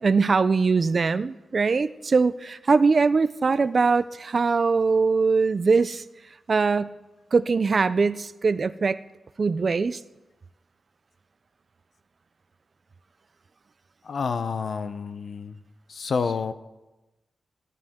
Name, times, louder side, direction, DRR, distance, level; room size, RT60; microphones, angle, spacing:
voice 1, 0.0-6.0 6.5-6.9 7.3-9.0 9.4-10.0, right 4 dB, 40° right, 14 dB, 0.3 m, -22 dB
voice 2, 14.0-15.6 15.9-16.5, left 5 dB, 55° left, 12 dB, 0.6 m, -29 dB
15.0 x 11.5 x 3.6 m, 1.0 s
wide cardioid pair, 175°, 0 cm